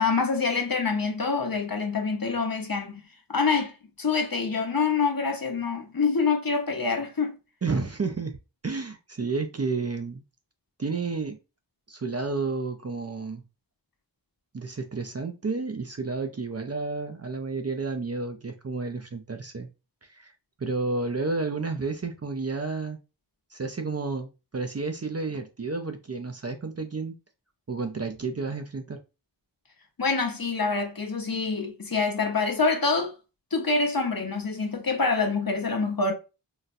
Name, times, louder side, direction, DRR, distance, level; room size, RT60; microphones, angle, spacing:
voice 1, 0.0-7.4 30.0-33.1 33.5-36.1, left 4 dB, 50° left, 0.9 m, -26 dB
voice 2, 7.6-8.4 8.6-10.2 10.8-11.4 11.9-13.4 14.5-19.7 20.0-20.3 20.6-23.0 23.5-27.1 27.7-29.0, right 4 dB, 35° right, 0.4 m, -31 dB
4.0 x 2.1 x 2.5 m
wide cardioid pair, 45°, 45 cm